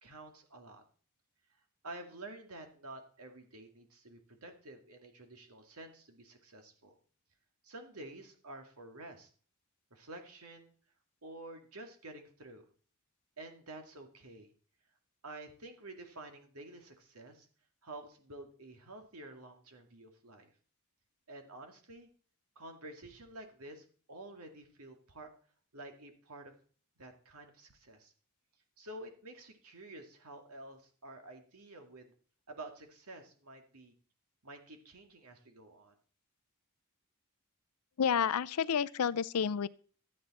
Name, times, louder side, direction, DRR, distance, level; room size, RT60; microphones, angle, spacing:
voice 1, 0.0-0.8 1.8-7.0 7.6-9.3 9.9-10.7 11.2-12.7 13.4-14.5 15.2-17.5 17.8-20.5 21.3-22.1 22.6-25.3 25.7-26.5 27.0-28.1 28.8-32.1 32.5-33.9 34.4-36.0, right 2 dB, 80° right, 2.2 m, -50 dB
voice 2, 38.0-39.7, left 7 dB, 85° left, 0.5 m, -30 dB
13.0 x 8.7 x 4.2 m
head